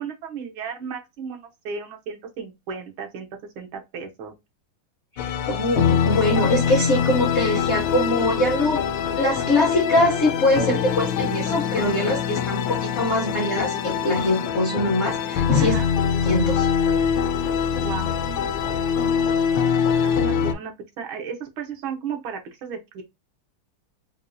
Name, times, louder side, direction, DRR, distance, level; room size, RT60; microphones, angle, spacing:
voice 1, 0.0-3.3 3.6-4.3 10.5-10.8 15.6-15.9 17.7-19.3 20.0-23.0, right 6 dB, 90° right, 1.7 m, -34 dB
sound 1, 5.2-20.5, left 7 dB, 75° left, 1.3 m, -23 dB
voice 2, 5.2-8.8 9.1-15.8 16.2-16.7, left 1 dB, 60° left, 0.7 m, -23 dB
4.5 x 2.3 x 2.5 m
omnidirectional pair, 2.2 m